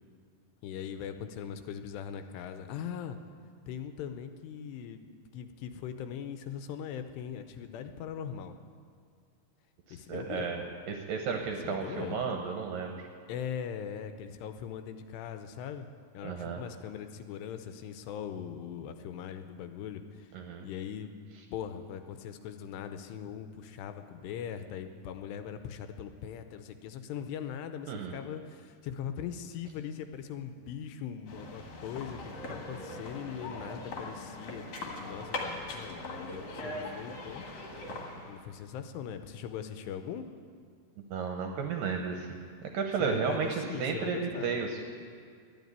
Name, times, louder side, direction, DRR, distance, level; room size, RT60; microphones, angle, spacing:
voice 1, 0.6-3.2 3.7-8.6 9.9-10.6 11.3-12.2 13.3-15.9 16.1-20.3 20.6-21.2 21.5-37.5 38.3-40.3 43.0-44.6, left 8 dB, 85° left, 9 dB, 2.8 m, -40 dB
voice 2, 10.1-13.1 16.2-16.6 20.3-20.7 27.9-28.2 41.1-42.4 42.7-44.8, right 6 dB, 75° right, 3 dB, 2.1 m, -33 dB
sound 1, 31.3-38.4, left 2 dB, 50° left, 2.1 m, -40 dB
12.0 x 9.4 x 9.4 m, 2.2 s
omnidirectional pair, 4.9 m